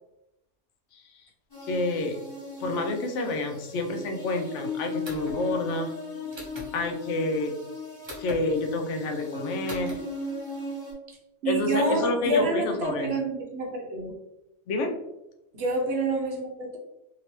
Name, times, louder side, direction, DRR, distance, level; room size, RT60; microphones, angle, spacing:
sound 1, 1.5-10.9, left 2 dB, 20° left, 1.2 m, -37 dB
voice 1, 1.6-2.2 2.6-5.9 6.7-7.5 8.2-10.0 11.5-13.1 14.7-15.0, left 2 dB, 80° left, 4 dB, 0.9 m, -28 dB
sound 2, 5.0-5.4 6.3-6.7 8.0-8.4 9.7-10.0, equal, 25° right, 0.7 m, -39 dB
voice 2, 11.4-13.2 13.5-14.1 15.5-16.8, right 2 dB, 65° right, 1 dB, 0.9 m, -27 dB
2.9 x 2.9 x 3.0 m, 0.90 s
omnidirectional pair, 1.2 m